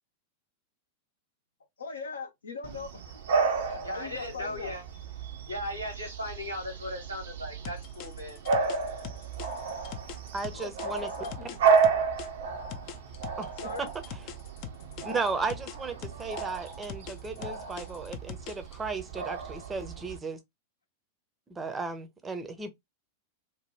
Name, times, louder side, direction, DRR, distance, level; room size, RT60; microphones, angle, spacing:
voice 1, 1.8-2.9 3.6-4.8 10.5-11.6 13.6-13.9, left 4 dB, 70° left, 0.7 m, -40 dB
Bark / Bird vocalization bird call bird song, 2.6-20.2, right 5 dB, 60° right, 0.6 m, -32 dB
voice 2, 3.8-4.8 5.5-8.4, left 1 dB, 85° right, 1.4 m, -37 dB
sound 1, 7.6-12.3 12.7-15.8 16.0-18.7, left 8 dB, 40° left, 0.4 m, -41 dB
voice 3, 10.3-11.1 13.4-13.5 13.8-13.9 15.0-20.4 21.5-22.7, right 4 dB, 15° right, 0.6 m, -35 dB
2.8 x 2.2 x 3.3 m
figure-of-eight pair, 90°, 0 cm